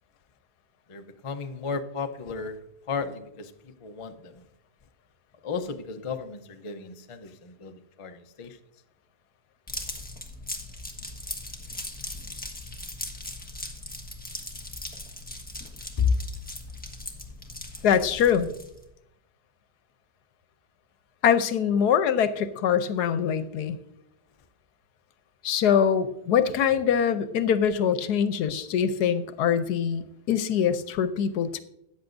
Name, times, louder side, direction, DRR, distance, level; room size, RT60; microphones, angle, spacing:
voice 1, 0.9-4.4 5.4-8.6 16.0-16.2 17.8-17.9, left 5 dB, 40° left, 0.4 m, -32 dB
sound 1, 9.7-18.8, left 1 dB, 5° left, 1.2 m, -39 dB
voice 2, 17.8-18.5 21.2-23.8 25.4-31.6, left 8 dB, 85° left, 1.3 m, -23 dB
14.0 x 9.5 x 2.6 m
omnidirectional pair, 1.7 m